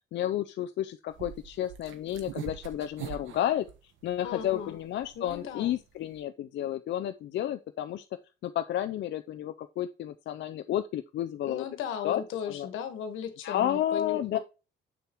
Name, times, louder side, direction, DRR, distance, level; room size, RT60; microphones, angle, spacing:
voice 1, 0.1-3.7 4.0-8.1 8.4-11.6 12.0-12.2 12.5-12.7 13.4-14.4, left 11 dB, 65° left, 0.4 m, -31 dB
sound 1, 1.1-6.2, right 9 dB, 75° right, 1.1 m, -43 dB
voice 2, 4.2-4.8 5.1-5.7 11.5-14.4, left 8 dB, 85° left, 1.4 m, -36 dB
6.7 x 6.2 x 2.9 m
cardioid pair, 90°, 20 cm